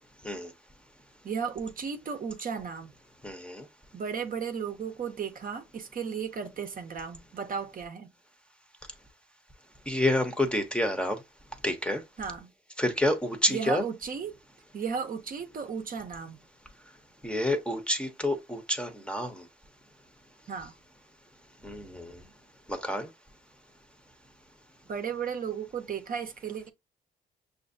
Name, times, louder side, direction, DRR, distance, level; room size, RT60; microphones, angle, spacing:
voice 1, 1.2-2.9 3.9-8.1 12.2-12.5 13.5-14.3 14.7-16.4 20.5-20.8 24.9-26.7, right 6 dB, 45° right, 0.7 m, -34 dB
voice 2, 3.2-3.7 9.9-11.2 11.6-12.0 12.8-13.8 17.2-19.4 21.6-22.2 22.7-23.1, left 1 dB, 5° left, 0.8 m, -28 dB
6.1 x 2.5 x 2.6 m
cardioid pair, 90°, 20 cm